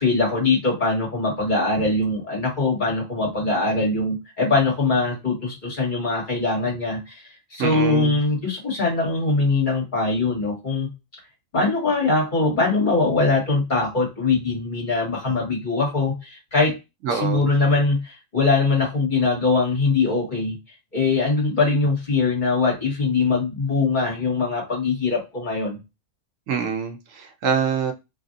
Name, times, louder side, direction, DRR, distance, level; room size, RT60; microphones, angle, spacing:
voice 1, 0.0-10.9 11.5-16.7 17.1-20.6 20.9-25.8, left 3 dB, 35° left, 1.7 m, -22 dB
voice 2, 7.6-8.2 17.0-17.5 26.5-27.9, right 6 dB, 75° right, 1.0 m, -25 dB
3.1 x 2.6 x 2.5 m
omnidirectional pair, 1.4 m